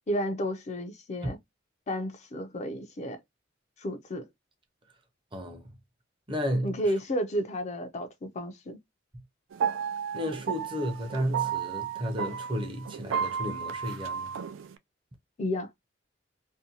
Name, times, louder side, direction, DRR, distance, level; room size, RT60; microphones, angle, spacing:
voice 1, 0.1-1.4 1.9-3.2 3.8-4.3 6.6-8.8 15.4-15.7, equal, 35° left, 0.4 m, -32 dB
voice 2, 5.3-5.7 6.3-6.8 9.1-9.2 10.1-14.3, equal, 25° right, 0.6 m, -33 dB
sound 1, 9.5-14.7, right 7 dB, 80° right, 0.4 m, -33 dB
2.6 x 2.2 x 2.7 m
head